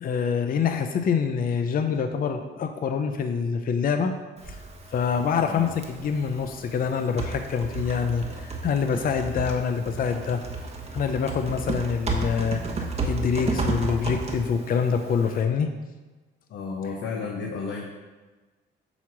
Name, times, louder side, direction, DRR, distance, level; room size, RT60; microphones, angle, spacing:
voice 1, 0.0-4.1 4.5-4.6 4.9-10.4 10.9-12.6 13.0-15.7, left 6 dB, 45° left, 7 dB, 0.5 m, -25 dB
Typing, 4.4-15.4, right 3 dB, 30° right, 1.1 m, -33 dB
voice 2, 5.4-5.8 16.5-17.9, left 4 dB, 70° left, -1 dB, 0.9 m, -32 dB
7.9 x 3.0 x 6.0 m, 1.2 s
cardioid pair, 90°, 20 cm